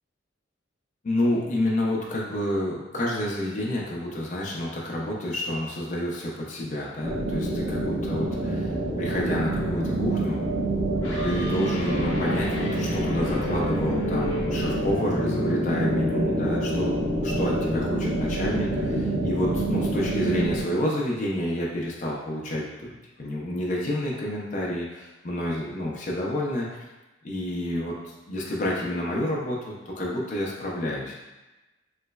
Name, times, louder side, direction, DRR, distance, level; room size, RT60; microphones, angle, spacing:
voice 1, 1.0-10.4 11.2-16.9 17.2-22.9 23.2-26.8 27.2-31.1, left 1 dB, 40° left, -3 dB, 0.4 m, -29 dB
sound 1, 7.0-20.6, right 1 dB, 25° right, 0.8 m, -27 dB
sound 2, 10.6-18.2, left 3 dB, 75° left, 0.8 m, -34 dB
3.1 x 3.0 x 2.3 m, 1.1 s
head